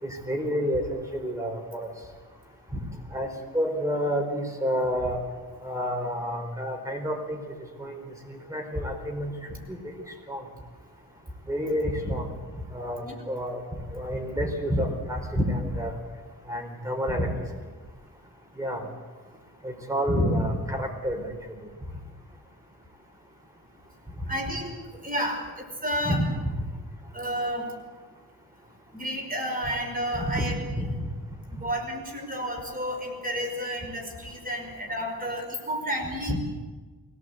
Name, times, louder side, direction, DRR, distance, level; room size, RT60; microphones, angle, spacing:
voice 1, 0.0-1.9 2.7-2.8 3.1-3.3 3.5-5.2 5.6-7.4 7.8-9.9 10.3-10.4 11.5-12.4 12.7-13.6 13.9-15.9 16.5-17.3 18.6-18.9 19.6-21.6 26.0-26.3 30.3-30.9 36.3-36.4, equal, 10° right, 2 dB, 4.5 m, -29 dB
voice 2, 24.3-26.2 27.1-27.7 28.9-30.6 31.5-36.4, equal, 25° right, 1 dB, 5.1 m, -31 dB
23.0 x 18.5 x 8.2 m, 1.4 s
wide cardioid pair, 145°, 35 cm